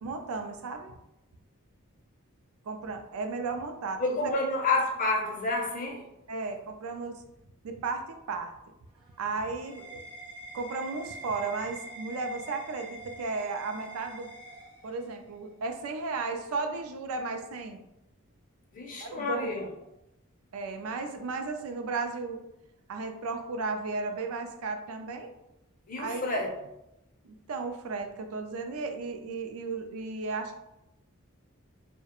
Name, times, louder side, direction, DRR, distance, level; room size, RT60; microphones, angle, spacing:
voice 1, 0.0-0.9 2.6-4.3 6.3-7.2 7.6-8.5 9.2-10.0 10.5-14.3 14.8-17.8 19.0-19.7 20.5-22.4 22.9-25.3 26.0-26.4 27.2-30.6, right 3 dB, 80° right, 6 dB, 0.3 m, -34 dB
voice 2, 4.0-6.0 18.7-19.7 25.9-26.5, left 2 dB, 40° left, 0 dB, 0.5 m, -29 dB
sound 1, 8.9-15.3, right 2 dB, 20° right, 0.5 m, -45 dB
2.3 x 2.1 x 2.9 m, 0.86 s
head